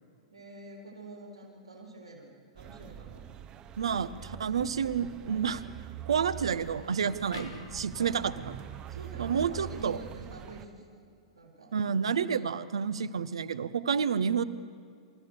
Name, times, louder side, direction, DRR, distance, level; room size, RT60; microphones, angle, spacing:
voice 1, 0.3-3.2 7.9-8.3 8.9-11.0 11.3-11.7, right 1 dB, 90° right, -2 dB, 4.2 m, -47 dB
sound 1, 2.6-10.7, right 11 dB, 30° right, 0.7 m, -44 dB
voice 2, 3.8-5.6 6.1-8.6 9.2-10.0 11.7-14.4, right 7 dB, 75° right, 13 dB, 0.7 m, -29 dB
sound 2, 7.3-10.5, left 2 dB, 85° left, 3.2 m, -49 dB
27.0 x 14.5 x 6.8 m, 2.2 s
figure-of-eight pair, 105°, 3 cm